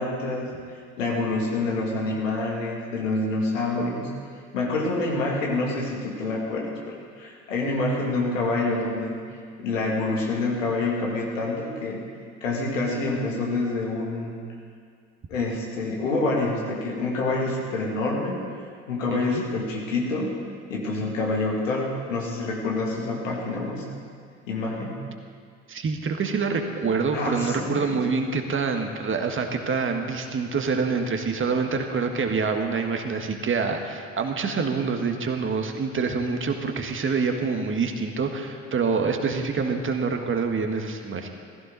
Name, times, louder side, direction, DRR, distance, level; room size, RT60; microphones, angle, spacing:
voice 1, 0.0-4.1 4.5-9.2 9.6-12.0 12.4-14.4 15.3-18.4 18.9-20.4 20.7-24.0 24.5-25.0 27.1-28.0, left 2 dB, 80° left, -2 dB, 2.7 m, -27 dB
voice 2, 19.1-19.4 25.7-41.3, right 5 dB, 30° right, 4 dB, 1.6 m, -26 dB
15.5 x 15.5 x 4.1 m, 2.2 s
hypercardioid pair, 60°, 38 cm